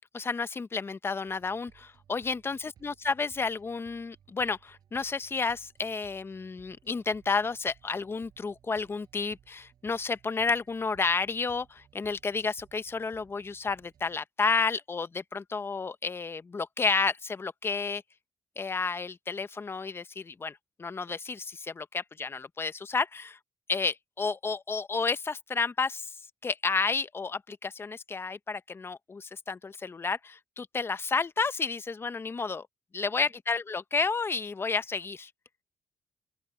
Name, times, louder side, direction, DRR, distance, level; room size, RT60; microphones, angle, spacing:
voice 1, 0.1-18.0 18.6-23.4 23.7-26.1 26.4-32.7 32.9-35.3, left 4 dB, 35° left, 1.0 m, -31 dB
sound 1, 1.3-14.2, right 9 dB, 70° right, 5.8 m, -61 dB
open air
supercardioid pair, 60°, 7 cm